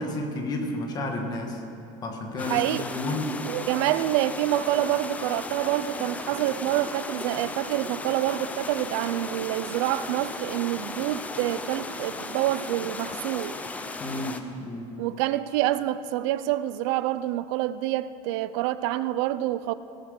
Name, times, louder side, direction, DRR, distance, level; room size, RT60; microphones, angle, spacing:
voice 1, 0.0-1.6 2.0-2.7 3.0-3.3 14.0-14.9, left 1 dB, 30° left, 1.6 m, -31 dB
sound 1, 2.4-14.4, left 3 dB, 10° left, 0.5 m, -36 dB
voice 2, 2.5-2.9 3.5-13.6 15.0-19.7, right 14 dB, 85° right, 0.5 m, -27 dB
19.0 x 7.6 x 6.6 m
cardioid pair, 170°, 14 cm